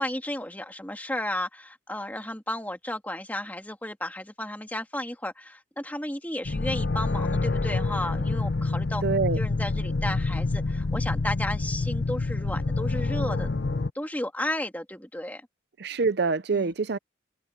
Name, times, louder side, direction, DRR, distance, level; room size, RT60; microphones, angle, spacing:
voice 1, 0.0-9.0 9.3-13.5 13.9-15.4, left 1 dB, 10° left, 2.5 m, -33 dB
sound 1, 6.4-13.9, left 3 dB, 55° left, 0.6 m, -27 dB
voice 2, 9.0-9.4 15.8-17.0, right 4 dB, 55° right, 0.5 m, -25 dB
head